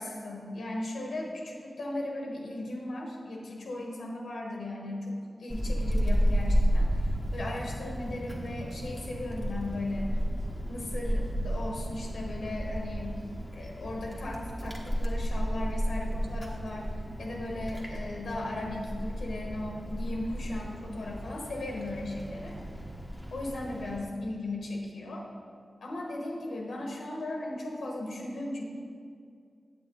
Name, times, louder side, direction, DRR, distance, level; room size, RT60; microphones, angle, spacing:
voice 1, 0.0-10.2 10.7-13.2 13.5-16.9 17.2-22.6 23.3-25.3 25.8-28.6, left 1 dB, 85° left, -1 dB, 1.3 m, -37 dB
Wind, 5.5-24.0, equal, ahead, 1.2 m, -32 dB
9.0 x 8.2 x 3.9 m, 2.3 s
wide cardioid pair, 100°, 0 cm